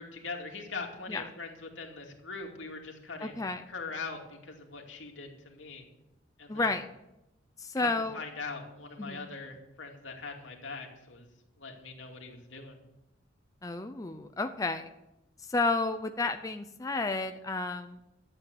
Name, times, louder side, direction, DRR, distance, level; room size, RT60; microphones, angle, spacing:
voice 1, 0.0-5.9 6.4-6.7 7.8-11.3 11.6-12.8, left 4 dB, 80° left, 1 dB, 2.5 m, -42 dB
voice 2, 3.2-3.6 6.5-6.9 7.6-8.2 9.0-9.3 13.6-14.9 15.5-18.1, left 3 dB, 20° left, 7 dB, 0.5 m, -31 dB
12.0 x 8.3 x 7.9 m, 0.91 s
head